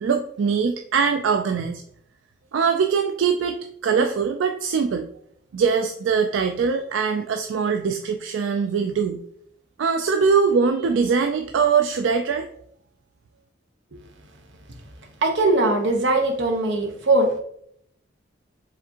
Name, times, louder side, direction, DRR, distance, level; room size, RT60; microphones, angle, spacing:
voice 1, 0.0-1.8 2.5-5.1 5.5-9.2 9.8-12.5, right 5 dB, 85° right, 6 dB, 0.4 m, -22 dB
voice 2, 15.2-17.4, right 2 dB, 70° right, 3 dB, 0.9 m, -20 dB
4.9 x 3.4 x 2.8 m, 0.68 s
head